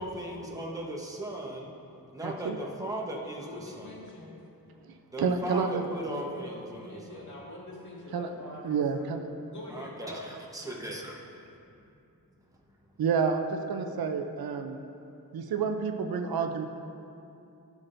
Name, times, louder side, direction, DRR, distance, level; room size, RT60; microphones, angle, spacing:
voice 1, 0.0-1.7 2.1-4.0 5.1-7.2 9.7-11.2, right 1 dB, 10° right, -2 dB, 1.1 m, -37 dB
voice 2, 2.2-2.6 5.2-5.8 8.1-8.3 8.6-9.2 13.0-14.8 15.3-16.6, right 5 dB, 90° right, 6 dB, 0.6 m, -29 dB
voice 3, 3.4-4.4 6.3-9.2 9.5-10.3, left 1 dB, 55° left, -5 dB, 2.1 m, -45 dB
15.5 x 6.1 x 2.6 m, 2.7 s
wide cardioid pair, 140°, 35 cm